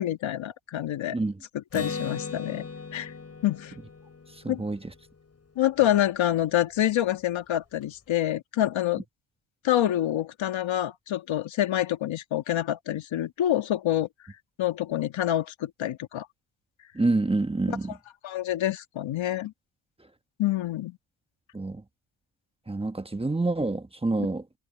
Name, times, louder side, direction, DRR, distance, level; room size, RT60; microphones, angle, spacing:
voice 1, 0.0-1.2 1.5-2.7 2.9-3.1 3.4-3.7 4.5-4.6 5.6-9.0 9.6-14.1 14.6-16.3 17.7-17.8 18.2-19.5 20.4-21.0, left 12 dB, 70° left, 1.9 m, -27 dB
Acoustic guitar, 1.7-5.4, left 4 dB, 30° left, 7.6 m, -38 dB
voice 2, 4.4-4.8 16.9-17.9 21.5-21.8 22.7-24.4, right 2 dB, 10° right, 1.2 m, -27 dB
cardioid pair, 110°, 48 cm